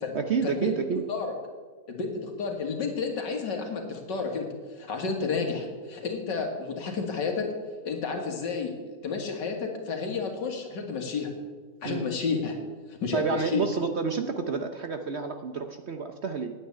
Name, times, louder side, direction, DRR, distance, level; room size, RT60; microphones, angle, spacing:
voice 1, 0.1-1.0 11.8-12.0 13.1-16.5, right 5 dB, 55° right, 6 dB, 0.8 m, -29 dB
voice 2, 1.9-4.5 4.8-7.5 7.8-8.7 9.0-11.3 11.8-12.6 12.9-13.6, left 5 dB, 85° left, 3 dB, 2.4 m, -31 dB
9.2 x 8.8 x 9.5 m, 1.4 s
omnidirectional pair, 1.9 m